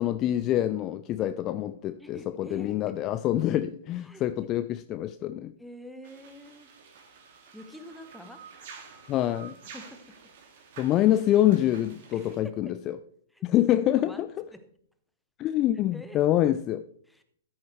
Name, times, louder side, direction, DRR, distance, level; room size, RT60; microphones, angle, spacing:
voice 1, 0.0-5.5 9.1-9.6 10.8-12.7 13.4-14.5 15.4-16.9, left 13 dB, 25° left, 0.3 m, -26 dB
voice 2, 2.0-2.9 4.0-4.6 5.6-6.7 7.5-8.4 9.7-10.0 12.1-12.6 13.3-13.4 14.0-14.2 14.5-14.6 15.9-16.2 17.1-17.2, equal, ahead, 1.0 m, -46 dB
sound 1, 6.0-12.4, right 6 dB, 45° right, 2.2 m, -50 dB
13.5 x 8.7 x 3.2 m
figure-of-eight pair, 110°, 0 cm